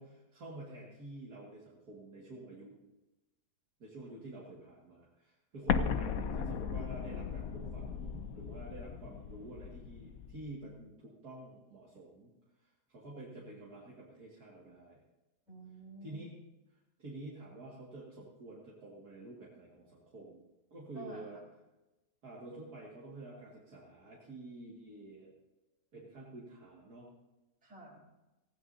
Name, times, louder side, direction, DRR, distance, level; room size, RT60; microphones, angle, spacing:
voice 1, 0.0-2.7 3.8-12.3 12.9-15.0 16.0-16.3 17.0-20.4 20.7-21.4 22.2-25.3 25.9-27.1, right 2 dB, 70° right, -5 dB, 2.6 m, -49 dB
Explosion, 5.7-10.4, left 7 dB, 70° left, 1.1 m, -36 dB
voice 2, 5.7-6.4 15.5-16.2 20.9-21.4 27.6-28.0, right 2 dB, 55° right, -2 dB, 4.2 m, -49 dB
18.5 x 15.5 x 2.7 m, 1.0 s
omnidirectional pair, 1.7 m